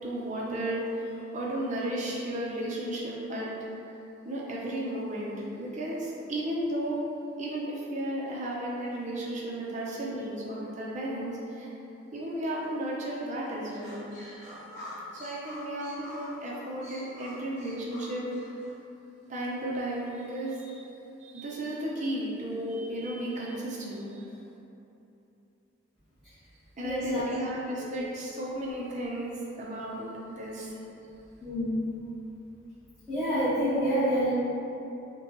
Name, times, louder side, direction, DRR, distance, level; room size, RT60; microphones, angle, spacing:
voice 1, 0.0-3.4 4.2-7.0 7.4-11.7 12.1-14.0 14.4-14.5 15.1-18.4 19.3-20.9 21.2-24.3 26.8-30.7, right 1 dB, 40° right, -5 dB, 0.6 m, -34 dB
sound 1, 13.7-18.7, left 1 dB, 40° left, 0.9 m, -45 dB
voice 2, 26.8-27.3 27.8-27.9 31.4-31.8 33.1-34.3, equal, ahead, -19 dB, 1.2 m, -27 dB
5.4 x 2.3 x 2.9 m, 2.9 s
head